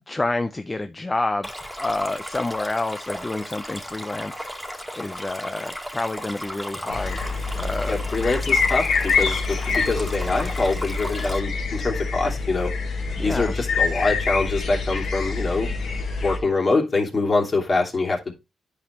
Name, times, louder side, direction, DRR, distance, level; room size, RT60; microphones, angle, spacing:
voice 1, 0.1-7.2 7.6-8.0 13.2-13.5, left 2 dB, 25° left, 0.8 m, -29 dB
Stream, 1.4-11.4, equal, ahead, 2.2 m, -35 dB
sound 1, 6.9-16.4, left 4 dB, 80° left, 2.8 m, -26 dB
voice 2, 7.9-12.7 13.2-15.7 16.2-18.3, left 3 dB, 45° left, 3.0 m, -24 dB
10.0 x 5.2 x 3.1 m
supercardioid pair, 55°, 0 cm